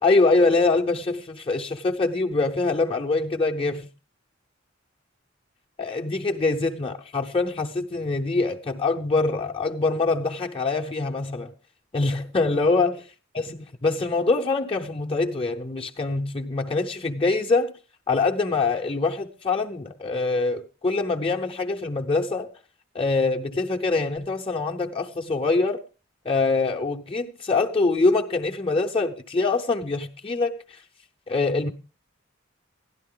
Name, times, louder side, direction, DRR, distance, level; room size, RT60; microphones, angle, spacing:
voice 1, 0.0-3.9 5.8-11.5 11.9-13.0 13.3-17.7 18.1-22.5 22.9-25.8 26.2-30.8 31.3-31.7, left 3 dB, 25° left, 0.7 m, -24 dB
12.0 x 11.0 x 3.8 m
head